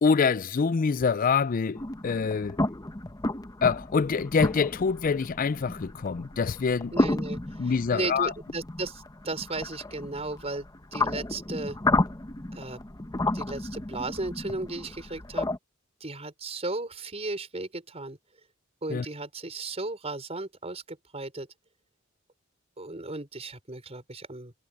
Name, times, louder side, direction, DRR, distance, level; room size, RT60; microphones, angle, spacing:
voice 1, 0.0-2.6 3.6-6.9 7.6-8.3 18.9-19.1, left 5 dB, 40° left, 0.4 m, -25 dB
sound 1, 1.8-15.6, left 2 dB, 20° left, 0.9 m, -32 dB
voice 2, 6.9-10.7 10.9-11.8 12.5-12.8 13.3-15.5 16.0-18.2 18.8-21.5 22.8-24.5, right 2 dB, 30° right, 5.1 m, -35 dB
head